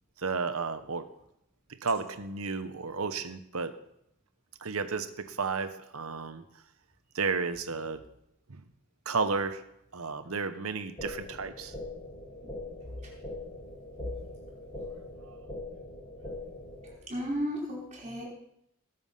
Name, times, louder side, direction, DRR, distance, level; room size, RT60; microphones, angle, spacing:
voice 1, 0.2-1.1 1.8-3.8 4.6-6.4 7.1-8.0 8.5-8.6 9.1-9.6 9.9-11.7 15.3-15.4, right 4 dB, 75° right, 10 dB, 1.0 m, -32 dB
sound 1, 11.0-17.0, left 2 dB, 25° left, 2.0 m, -42 dB
voice 2, 17.1-18.3, equal, 30° right, -4 dB, 5.0 m, -33 dB
18.5 x 7.1 x 5.6 m, 0.79 s
head